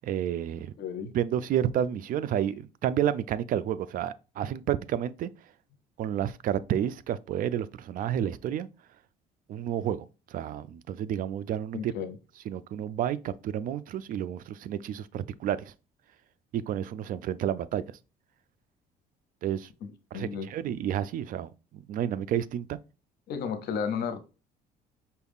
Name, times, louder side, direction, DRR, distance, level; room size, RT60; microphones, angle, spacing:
voice 1, 0.0-0.7 1.1-5.3 6.0-8.7 9.5-11.9 12.5-15.7 16.5-18.0 19.4-19.7 20.1-22.8, right 10 dB, 55° right, 0.4 m, -30 dB
voice 2, 0.8-1.1 11.7-12.2 19.8-20.5 23.3-24.2, left 6 dB, 70° left, 0.8 m, -33 dB
5.4 x 2.3 x 3.5 m
cardioid pair, 110°, 17 cm